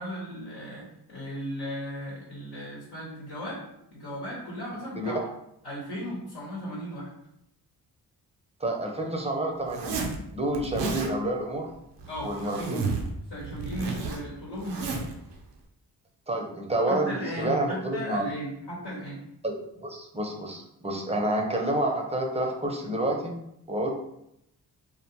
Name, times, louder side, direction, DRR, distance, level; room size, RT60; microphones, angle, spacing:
voice 1, 0.0-3.6 3.9-5.3 5.6-7.1 12.1-12.9 13.3-15.1 16.9-19.2, equal, 70° left, -6 dB, 1.0 m, -36 dB
voice 2, 8.6-10.0 10.3-11.7 12.2-12.8 16.3-18.3 19.4-23.3 23.7-23.9, right 1 dB, 15° right, 1 dB, 0.6 m, -29 dB
Zipper (clothing), 9.7-10.2 10.5-11.1 12.0-13.1 13.4-15.1, right 4 dB, 80° right, 0.6 m, -32 dB
2.4 x 2.2 x 2.8 m, 0.79 s
cardioid pair, 45°, 41 cm